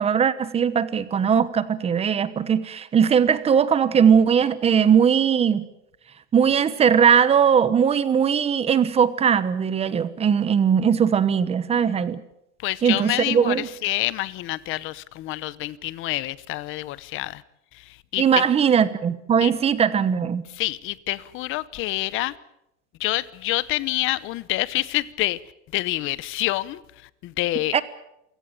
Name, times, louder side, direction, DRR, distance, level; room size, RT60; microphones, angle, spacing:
voice 1, 0.0-5.6 6.3-12.2 12.8-13.7 18.2-20.4 27.7-27.8, right 7 dB, 15° right, 1.1 m, -19 dB
voice 2, 12.6-17.4 18.1-18.4 19.4-19.5 20.6-22.3 23.0-25.4 25.7-26.8 27.2-27.7, left 17 dB, 35° left, 0.9 m, -27 dB
27.0 x 16.5 x 9.1 m
supercardioid pair, 155°, 36 cm